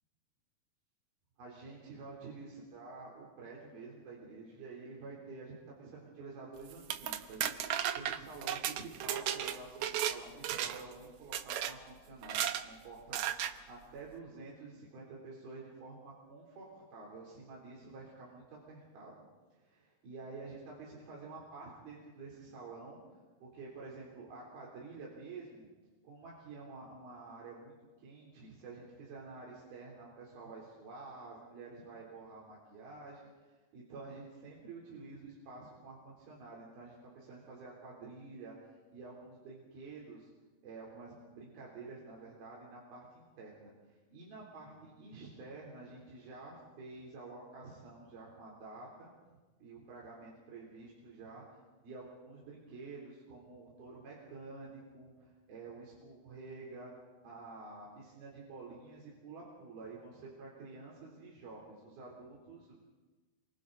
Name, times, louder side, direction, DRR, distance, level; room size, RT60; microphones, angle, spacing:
voice 1, 1.4-7.5 7.9-19.2 19.5-23.0 23.4-25.7 26.0-33.2 33.7-38.5 38.9-40.3 40.6-43.7 44.1-49.1 49.6-51.4 51.8-56.9 57.2-62.8, right 3 dB, 70° right, -4 dB, 5.4 m, -49 dB
sound 1, 6.7-10.2 10.4-10.9 11.3-11.7 12.2-12.6 13.1-13.5, right 10 dB, 90° right, 1.6 m, -35 dB
27.5 x 25.0 x 4.0 m, 1.3 s
omnidirectional pair, 4.5 m